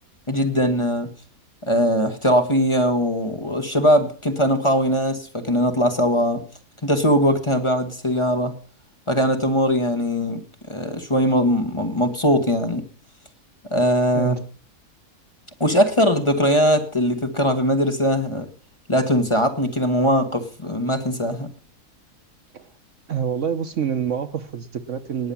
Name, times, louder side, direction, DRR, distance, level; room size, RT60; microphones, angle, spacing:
voice 1, 0.3-1.1 1.6-6.4 6.8-8.5 9.1-10.4 10.7-12.8 13.7-14.3 15.6-18.5 18.9-21.5, equal, 20° left, 5 dB, 1.5 m, -20 dB
voice 2, 23.1-25.3, right 8 dB, 55° right, 9 dB, 1.2 m, -26 dB
19.0 x 7.1 x 7.1 m, 0.42 s
omnidirectional pair, 1.6 m